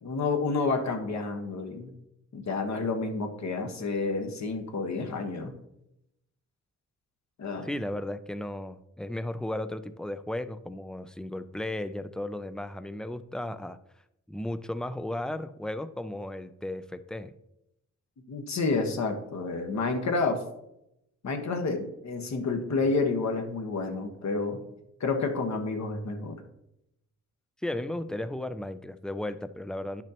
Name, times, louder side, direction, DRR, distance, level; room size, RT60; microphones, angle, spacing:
voice 1, 0.0-1.9 2.3-5.5 7.4-7.7 18.3-20.4 21.2-24.6 25.0-26.4, left 3 dB, 65° left, 4 dB, 1.2 m, -29 dB
voice 2, 7.6-13.8 14.3-17.3 27.6-30.0, left 1 dB, ahead, 12 dB, 0.4 m, -35 dB
10.5 x 6.1 x 2.9 m, 0.84 s
cardioid pair, 100°, 30 cm